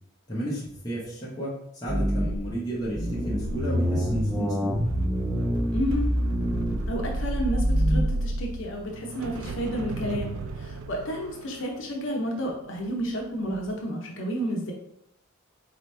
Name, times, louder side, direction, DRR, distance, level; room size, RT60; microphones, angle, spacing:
voice 1, 0.3-4.8, right 1 dB, 20° left, -7 dB, 1.0 m, -32 dB
sound 1, 1.9-2.5 3.0-8.0, equal, ahead, 0.3 m, -26 dB
sound 2, 2.8-13.1 13.4-13.7, right 2 dB, 85° right, 0.4 m, -34 dB
voice 2, 5.7-6.1 6.9-14.7, equal, 65° left, 0 dB, 0.7 m, -31 dB
4.1 x 3.0 x 3.2 m, 0.75 s
head